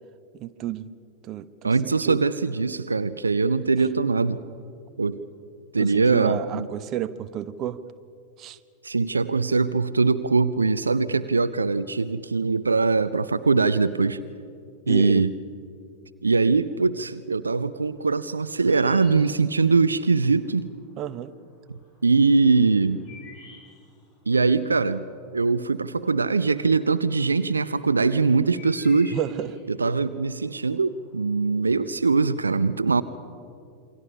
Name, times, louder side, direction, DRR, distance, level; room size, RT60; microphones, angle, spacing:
voice 1, 0.3-0.9 1.2-1.7 2.1-2.2 5.8-7.8 8.4-8.6 14.9-15.2 21.0-21.3 29.1-29.6, right 11 dB, 35° right, 13 dB, 0.8 m, -31 dB
voice 2, 1.6-4.4 5.0-5.2 5.7-6.7 8.8-14.2 14.9-15.3 16.2-20.7 22.0-23.1 24.3-25.1 25.3-29.2 29.7-33.0, right 4 dB, 75° right, 15 dB, 0.6 m, -22 dB
sound 1, 17.6-20.2 20.6-21.3 21.7-26.8 27.1-31.4, left 3 dB, 35° left, 6.6 m, -51 dB
27.5 x 23.5 x 5.6 m, 2.4 s
figure-of-eight pair, 90°, 0 cm